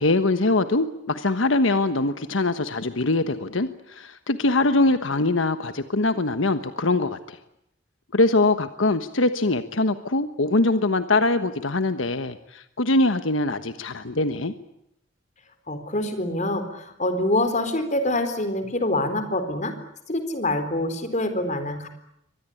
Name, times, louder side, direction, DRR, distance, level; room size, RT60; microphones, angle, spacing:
voice 1, 0.0-7.4 8.1-14.5, left 2 dB, 85° left, 10 dB, 1.3 m, -23 dB
voice 2, 15.7-19.7 20.1-21.9, left 1 dB, 40° left, 9 dB, 4.0 m, -25 dB
25.0 x 19.5 x 9.9 m, 0.78 s
head